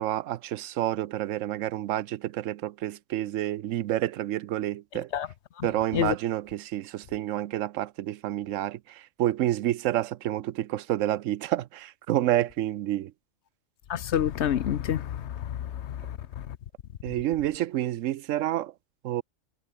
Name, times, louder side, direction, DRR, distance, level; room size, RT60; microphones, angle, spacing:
voice 1, 0.0-5.1 5.6-13.1 17.0-18.7 19.0-19.2, right 13 dB, 80° right, 1.0 m, -29 dB
voice 2, 13.9-16.6, left 10 dB, 65° left, 1.0 m, -29 dB
omnidirectional pair, 1.3 m